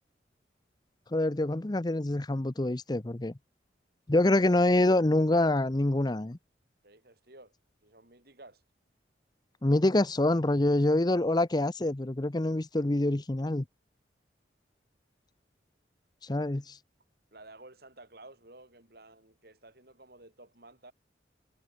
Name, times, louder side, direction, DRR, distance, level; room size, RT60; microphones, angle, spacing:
voice 1, 1.1-3.3 4.1-6.4 9.6-13.6 16.2-16.8, left 1 dB, 25° left, 0.7 m, -26 dB
voice 2, 6.8-7.5 7.8-8.6 17.3-20.9, right 2 dB, 55° right, 7.7 m, -53 dB
head